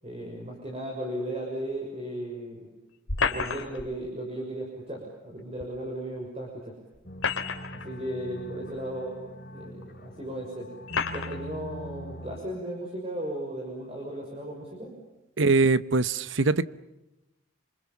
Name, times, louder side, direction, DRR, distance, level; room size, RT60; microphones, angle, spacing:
voice 1, 0.0-2.7 3.2-6.8 7.7-9.2 9.5-10.7 11.1-15.0, right 1 dB, 30° right, 6.4 m, -36 dB
sound 1, 3.1-3.9 5.6-5.7 6.9-7.9 8.7-8.8 9.8-9.9 10.9-11.4, left 5 dB, 80° left, 2.9 m, -30 dB
sound 2, 7.0-12.4, equal, 45° left, 4.8 m, -42 dB
voice 2, 15.4-16.6, right 3 dB, 75° right, 1.0 m, -22 dB
29.5 x 27.0 x 7.1 m
head